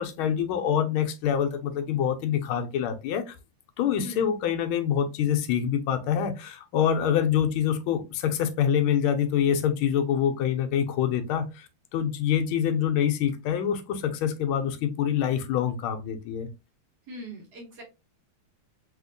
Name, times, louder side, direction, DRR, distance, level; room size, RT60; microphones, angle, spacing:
voice 1, 0.0-3.4 3.8-16.5, left 9 dB, 80° left, 1.4 m, -26 dB
voice 2, 4.0-4.3 17.1-17.8, equal, 55° right, 1.4 m, -41 dB
3.5 x 2.8 x 2.5 m
omnidirectional pair, 2.3 m